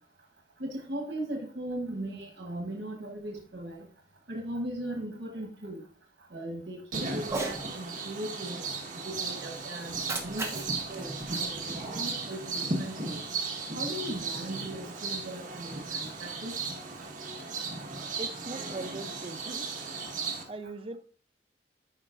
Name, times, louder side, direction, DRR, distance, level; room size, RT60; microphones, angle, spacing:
voice 1, 0.6-3.8 4.3-5.8 6.3-8.6 9.0-10.6 10.9-13.2 13.7-16.5, right 1 dB, 85° right, 1.1 m, -38 dB
sound 1, 6.9-20.4, right 4 dB, 50° right, 1.4 m, -36 dB
Cat, 7.2-7.6 9.8-12.2, right 3 dB, 15° right, 1.0 m, -37 dB
voice 2, 18.2-19.7 20.5-21.0, right 2 dB, 30° right, 0.6 m, -40 dB
11.0 x 4.8 x 2.5 m
head